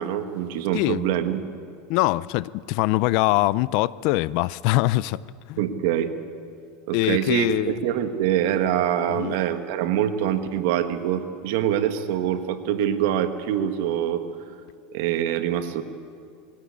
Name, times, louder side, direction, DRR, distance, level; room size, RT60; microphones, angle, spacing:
voice 1, 0.0-1.4 5.6-6.1 6.9-14.2 14.9-15.8, right 10 dB, 65° right, 1.6 m, -24 dB
voice 2, 1.9-5.2 5.5-5.6 6.9-7.8 9.1-9.4, left 19 dB, 55° left, 0.4 m, -23 dB
21.5 x 17.0 x 8.3 m
supercardioid pair, 140°, 0 cm